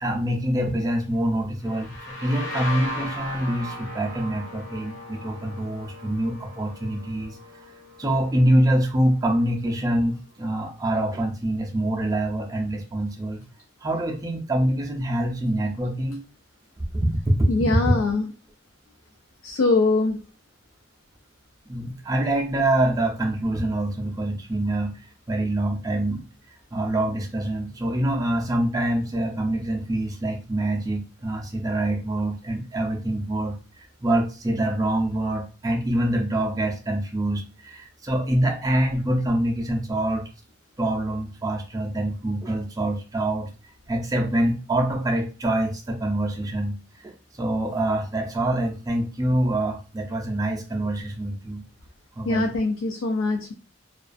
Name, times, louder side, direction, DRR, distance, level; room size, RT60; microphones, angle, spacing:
voice 1, 0.0-7.4 8.0-13.4 13.8-16.2 17.0-17.3 21.7-25.0 25.3-26.2 26.7-40.3 40.8-43.5 43.9-51.6 52.2-52.5, right 1 dB, 20° right, 1 dB, 0.4 m, -25 dB
sound 1, 1.6-9.2, left 1 dB, 65° left, 0.8 m, -37 dB
voice 2, 17.5-18.3 19.4-20.2 52.2-53.5, left 3 dB, 80° left, 3 dB, 0.4 m, -22 dB
2.3 x 2.3 x 2.4 m, 0.34 s
head